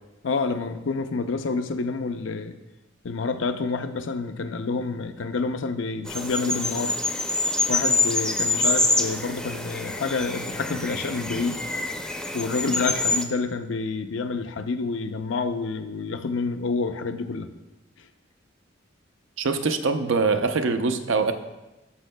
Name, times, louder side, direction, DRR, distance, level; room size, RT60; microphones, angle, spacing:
voice 1, 0.2-2.5 3.0-7.0 7.7-11.6 12.3-17.5, left 4 dB, 80° left, 9 dB, 0.5 m, -28 dB
sound 1, 6.1-13.2, left 2 dB, 5° left, 0.5 m, -26 dB
voice 2, 19.4-21.3, right 4 dB, 80° right, 8 dB, 0.6 m, -23 dB
12.5 x 6.3 x 2.2 m, 1.0 s
head